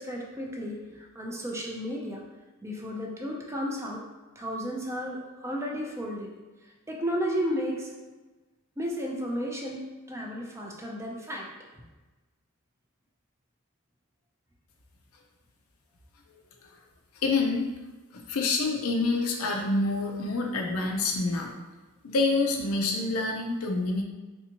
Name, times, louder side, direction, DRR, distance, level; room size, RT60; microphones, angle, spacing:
voice 1, 0.0-2.2 2.6-4.0 4.4-6.3 6.9-7.9 8.8-9.8 10.1-11.5 11.8-11.9, equal, 15° right, -1 dB, 0.4 m, -33 dB
voice 2, 17.2-17.7 18.1-21.5 22.0-24.0, left 3 dB, 70° left, 2 dB, 0.5 m, -27 dB
3.4 x 2.7 x 2.8 m, 1.2 s
head